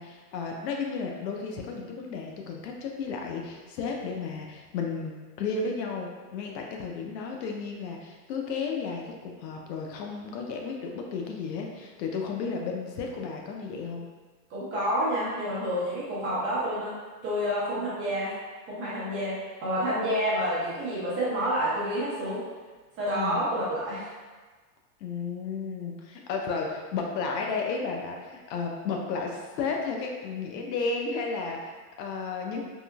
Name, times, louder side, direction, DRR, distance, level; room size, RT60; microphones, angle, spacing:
voice 1, 0.0-5.1 5.4-14.1 23.1-23.4 25.0-32.6, left 4 dB, 80° left, 1 dB, 0.7 m, -33 dB
voice 2, 14.5-17.0 17.2-18.3 18.6-22.4 23.0-24.1, equal, 25° right, -9 dB, 0.8 m, -29 dB
3.6 x 2.5 x 2.3 m, 1.4 s
supercardioid pair, 160°, 49 cm